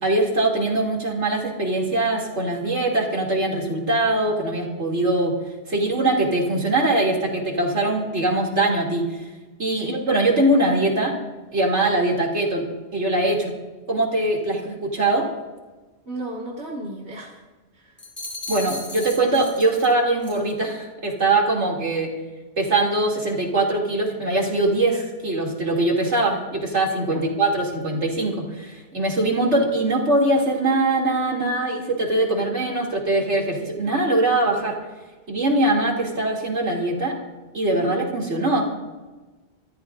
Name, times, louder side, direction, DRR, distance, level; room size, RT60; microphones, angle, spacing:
voice 1, 0.0-5.3 5.7-9.2 9.6-11.1 11.5-12.6 12.9-13.5 13.9-15.3 18.5-22.1 22.6-34.7 35.3-37.1 37.5-38.6, right 2 dB, 85° right, -1 dB, 3.3 m, -22 dB
voice 2, 16.1-17.4 17.7-18.0 27.1-27.2 37.9-38.0, right 2 dB, 65° right, -4 dB, 2.4 m, -34 dB
sound 1, 18.0-19.9 20.2-20.5, left 2 dB, 10° left, 3.1 m, -35 dB
26.0 x 14.0 x 2.7 m, 1.2 s
omnidirectional pair, 1.2 m